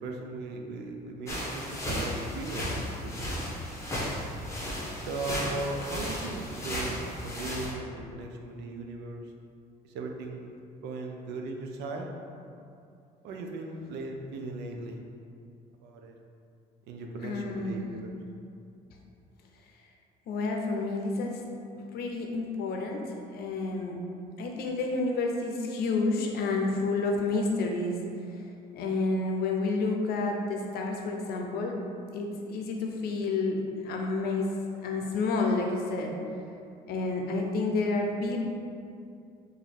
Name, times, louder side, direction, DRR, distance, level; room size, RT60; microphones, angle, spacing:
voice 1, 0.0-3.4 4.9-9.2 9.8-12.1 13.2-15.0 15.8-16.2 16.9-18.2, right 2 dB, 85° right, 2 dB, 0.5 m, -38 dB
sound 1, 1.3-7.7, equal, 15° left, 0.9 m, -34 dB
voice 2, 17.2-17.9 20.3-21.4 21.7-23.0 23.3-24.0 24.4-28.0 28.7-31.8 32.1-33.6 33.8-34.5 34.8-36.1 36.9-38.4, left 3 dB, 70° left, 2 dB, 0.6 m, -29 dB
2.9 x 2.6 x 4.2 m, 2.5 s
cardioid pair, 110°, 17 cm